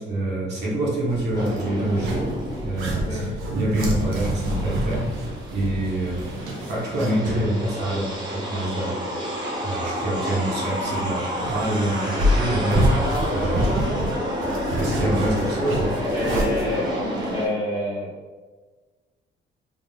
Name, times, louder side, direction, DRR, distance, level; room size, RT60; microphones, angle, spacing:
voice 1, 0.0-2.3 2.6-3.2 3.5-5.1 5.5-6.2 6.7-9.0 9.6-12.9 13.3-13.8 14.7-15.9, right 1 dB, 55° right, -6 dB, 1.0 m, -26 dB
sound 1, 1.1-7.5 7.8-7.9 10.8-17.3, equal, 80° right, 0.8 m, -27 dB
sound 2, 1.3-3.2 3.6-17.5, equal, 20° right, 0.9 m, -29 dB
voice 2, 3.1-3.4 16.1-16.9 17.3-18.2, left 1 dB, 20° left, -6 dB, 0.6 m, -28 dB
3.6 x 2.4 x 3.5 m, 1.4 s
cardioid pair, 140°, 21 cm